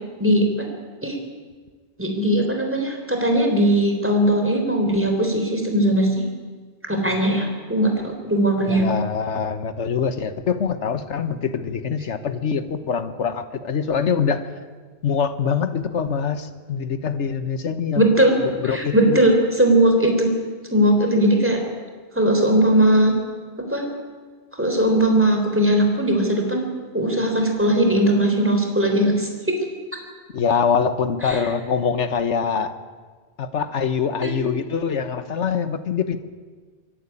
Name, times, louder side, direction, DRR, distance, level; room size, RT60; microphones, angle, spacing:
voice 1, 2.0-6.2 6.9-8.8 18.0-18.3 18.6-20.3 20.7-21.6 22.1-23.1 23.7-23.9 24.5-26.7 26.9-29.3 31.2-31.4 34.2-34.5, right 1 dB, 10° right, 3 dB, 3.6 m, -19 dB
voice 2, 8.7-14.5 15.0-18.1 18.4-19.2 30.3-32.7 33.4-36.2, left 6 dB, 85° left, 11 dB, 1.5 m, -24 dB
24.5 x 11.0 x 9.9 m, 1.5 s
omnidirectional pair, 1.2 m